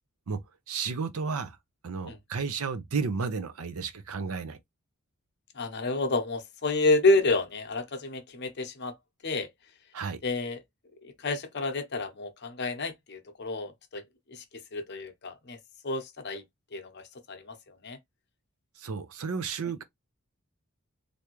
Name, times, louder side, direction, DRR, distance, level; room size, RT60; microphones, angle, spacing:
voice 1, 0.7-1.6 1.8-4.6 9.9-10.2 18.8-19.8, right 5 dB, 70° right, 0.6 m, -32 dB
voice 2, 5.5-8.9 9.2-9.5 10.2-10.6 11.2-14.0 14.3-14.4 14.7-15.6 15.8-16.4 16.7-18.0, left 2 dB, 50° left, 0.7 m, -29 dB
3.4 x 2.6 x 3.0 m
head